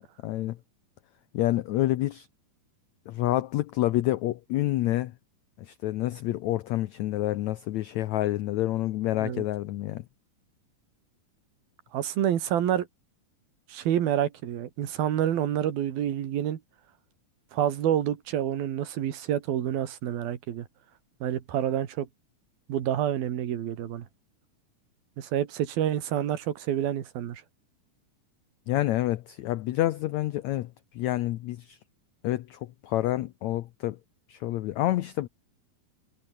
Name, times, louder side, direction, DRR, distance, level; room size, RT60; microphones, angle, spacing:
voice 1, 0.2-0.6 1.3-2.3 3.1-5.1 5.6-10.0 28.7-31.8 32.2-34.0 34.3-35.3, left 15 dB, 85° left, 1.6 m, -28 dB
voice 2, 11.9-12.9 13.7-16.6 17.5-20.7 21.2-22.1 22.7-24.1 25.2-27.4, right 10 dB, 80° right, 3.8 m, -28 dB
omnidirectional pair, 4.2 m